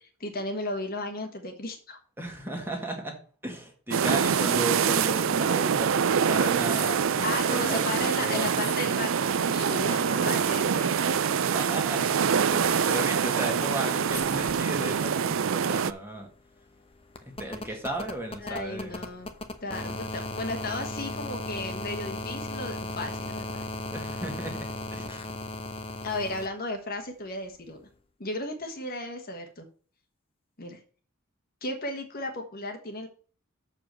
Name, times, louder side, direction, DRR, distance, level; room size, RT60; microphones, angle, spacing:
voice 1, 0.2-2.0 7.2-11.4 18.4-19.3 19.6-23.7 26.0-27.8 28.2-29.7 30.6-30.8 31.6-33.1, left 2 dB, 45° left, 5 dB, 1.4 m, -35 dB
voice 2, 2.2-8.5 9.6-10.4 11.4-12.2 12.5-16.3 17.4-19.0 19.8-20.0 23.9-25.3, right 1 dB, 10° right, 2 dB, 1.8 m, -35 dB
sound 1, 3.9-15.9, right 7 dB, 65° right, 0.4 m, -25 dB
sound 2, 4.0-4.7 5.1-5.2 5.9-6.0 6.2-9.9 11.4-13.3 14.1-14.9, left 2 dB, 10° left, 1.9 m, -44 dB
sound 3, 16.0-26.5 27.9-28.0, left 2 dB, 25° left, 0.9 m, -37 dB
6.9 x 5.0 x 6.8 m, 0.41 s
head